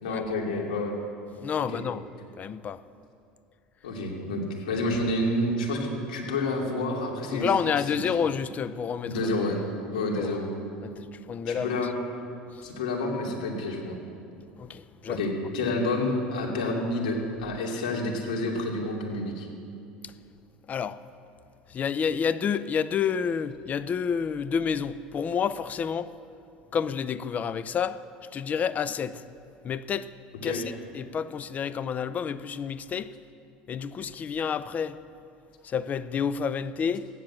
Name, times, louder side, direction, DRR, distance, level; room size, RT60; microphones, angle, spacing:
voice 1, 0.0-1.0 1.7-1.8 3.8-7.5 8.0-8.2 9.1-9.6 9.9-10.5 11.5-11.9 12.6-14.0 15.1-19.5 30.4-30.6, left 2 dB, 85° left, 2.8 m, -29 dB
voice 2, 1.3-2.0 2.4-2.8 7.3-9.3 10.2-10.4 10.8-11.8 12.5-12.7 14.5-15.2 20.0-20.1 20.7-21.0 21.7-26.1 26.7-28.0 28.3-29.2 29.6-30.1 30.4-33.1 33.7-35.0 35.6-37.1, left 7 dB, 35° left, 0.6 m, -29 dB
15.0 x 10.5 x 7.5 m
hypercardioid pair, 85°, 4 cm